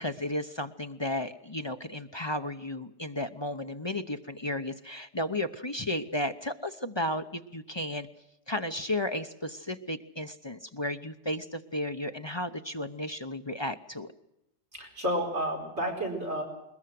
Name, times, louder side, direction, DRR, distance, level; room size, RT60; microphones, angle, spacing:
voice 1, 0.0-8.1 8.5-14.1, left 1 dB, 25° left, 7 dB, 0.6 m, -34 dB
voice 2, 14.7-16.4, equal, 45° right, 0 dB, 4.9 m, -31 dB
21.0 x 21.0 x 7.7 m, 0.85 s
omnidirectional pair, 1.7 m